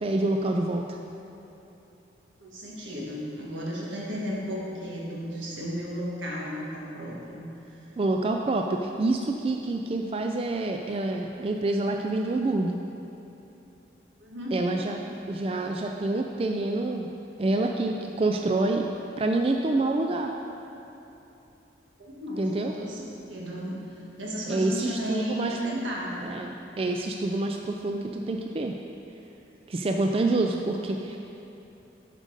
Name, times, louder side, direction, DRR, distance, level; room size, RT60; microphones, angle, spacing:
voice 1, 0.0-0.8 8.0-12.8 14.5-15.0 15.3-17.1 17.4-18.9 19.2-20.3 22.4-22.7 24.5-25.6 26.2-28.8 29.7-31.2, right 2 dB, 30° right, 3 dB, 0.3 m, -27 dB
voice 2, 2.4-7.8 14.2-14.6 22.0-26.3, equal, 90° right, -4 dB, 1.7 m, -34 dB
7.5 x 5.2 x 6.4 m, 3.0 s
head